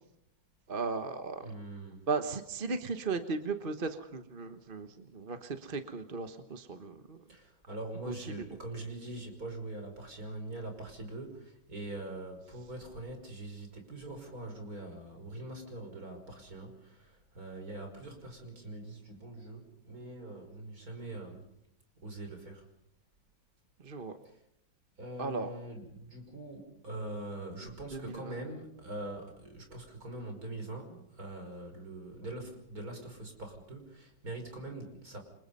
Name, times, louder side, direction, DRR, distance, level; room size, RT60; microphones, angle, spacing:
voice 1, 0.7-1.4 2.1-7.2 8.0-8.4 23.8-24.2 25.2-25.5 27.9-28.3, right 4 dB, 35° right, 8 dB, 1.2 m, -36 dB
voice 2, 1.4-2.1 7.3-21.5 22.0-22.7 25.0-35.2, right 2 dB, 50° right, 4 dB, 5.9 m, -43 dB
29.0 x 25.5 x 5.5 m, 0.75 s
omnidirectional pair, 2.0 m